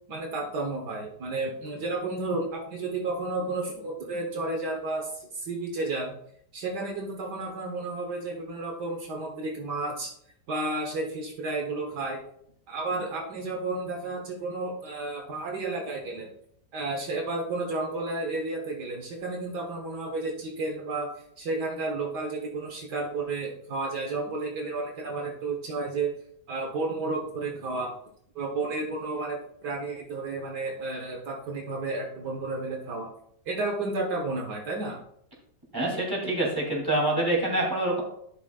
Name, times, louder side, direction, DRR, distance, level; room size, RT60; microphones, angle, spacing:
voice 1, 0.1-6.1 6.5-10.1 10.5-12.2 12.7-16.3 16.7-21.1 21.4-26.1 26.5-27.9 28.4-33.1 33.5-35.0, right 3 dB, 70° right, 0 dB, 1.8 m, -32 dB
voice 2, 35.7-38.0, right 1 dB, 10° right, -2 dB, 2.6 m, -26 dB
11.0 x 7.9 x 2.4 m, 0.69 s
omnidirectional pair, 1.9 m